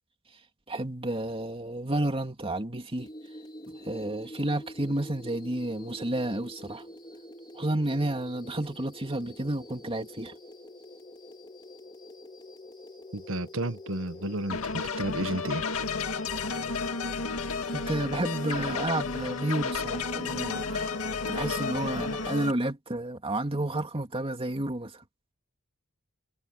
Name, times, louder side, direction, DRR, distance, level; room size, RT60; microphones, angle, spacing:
voice 1, 0.7-3.1 3.8-6.8 7.5-10.3 17.7-25.0, right 1 dB, 25° right, 2.6 m, -31 dB
sound 1, 3.0-22.5, left 2 dB, 20° left, 3.2 m, -44 dB
voice 2, 13.1-15.6, right 1 dB, 65° right, 1.7 m, -32 dB
sound 2, 14.5-22.5, left 4 dB, 80° left, 1.9 m, -32 dB
head